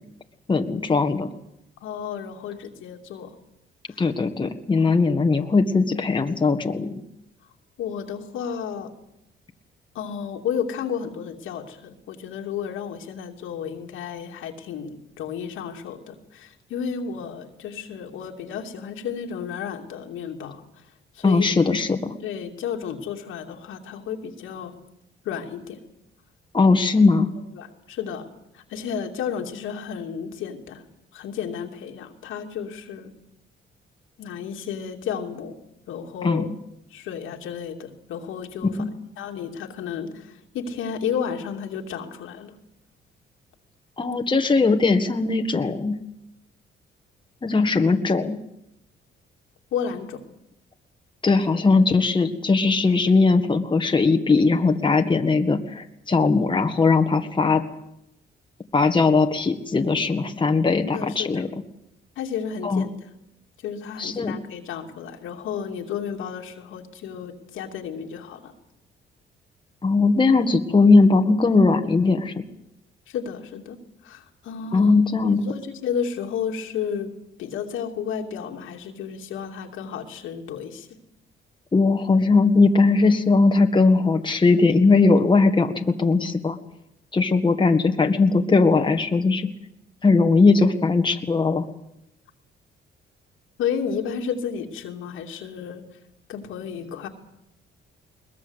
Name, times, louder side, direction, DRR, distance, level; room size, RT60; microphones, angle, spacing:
voice 1, 0.5-1.3 4.0-7.0 21.2-22.1 26.5-27.3 36.2-36.5 38.6-38.9 44.0-46.0 47.4-48.4 51.2-57.6 58.7-61.5 62.6-62.9 64.0-64.4 69.8-72.3 74.7-75.4 81.7-86.6 87.1-89.5 90.0-91.7, left 3 dB, 25° left, 5 dB, 1.8 m, -19 dB
voice 2, 1.8-3.3 3.9-4.0 4.8-4.9 7.8-8.9 9.9-20.6 21.1-21.4 22.2-24.7 25.2-25.8 27.5-28.3 28.5-30.8 31.1-33.1 34.2-35.6 35.9-36.5 36.9-38.8 39.2-42.5 49.7-50.2 60.8-61.5 62.2-62.9 63.6-68.5 73.1-73.8 74.0-74.9 75.2-77.1 77.4-80.9 93.6-95.8 96.3-97.1, left 7 dB, 85° left, 3 dB, 2.7 m, -32 dB
21.5 x 20.5 x 8.2 m, 0.83 s
cardioid pair, 90°, 20 cm